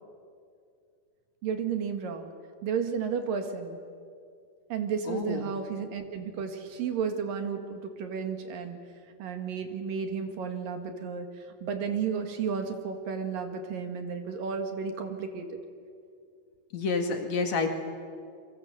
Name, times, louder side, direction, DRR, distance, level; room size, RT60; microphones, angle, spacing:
voice 1, 1.4-2.3 2.6-3.8 4.7-8.8 9.2-11.3 11.6-15.5, right 6 dB, 75° right, 6 dB, 3.6 m, -32 dB
voice 2, 5.1-5.5 16.7-17.7, left 4 dB, 55° left, 5 dB, 3.1 m, -29 dB
29.0 x 24.0 x 7.9 m, 2.3 s
omnidirectional pair, 4.1 m